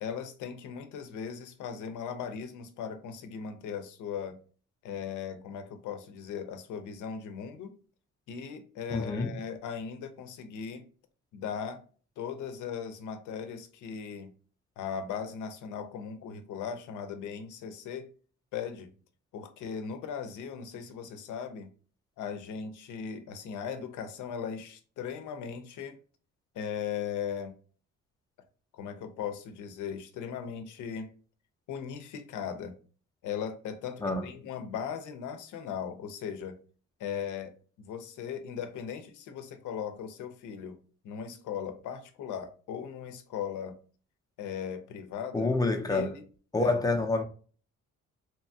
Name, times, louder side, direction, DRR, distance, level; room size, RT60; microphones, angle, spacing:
voice 1, 0.0-4.4 4.8-7.8 8.3-10.9 11.3-11.8 12.2-14.3 14.8-18.1 18.5-18.9 19.3-21.7 22.2-26.0 26.5-27.5 28.7-31.1 31.7-32.8 33.2-36.6 37.0-40.8 41.0-43.8 44.4-45.5 45.9-46.2 46.5-46.8, left 7 dB, 80° left, 0.6 m, -38 dB
voice 2, 8.9-9.3 34.0-34.3 45.3-46.1 46.5-47.2, left 2 dB, 10° left, 0.5 m, -27 dB
2.9 x 2.2 x 2.6 m
cardioid pair, 90°, 30 cm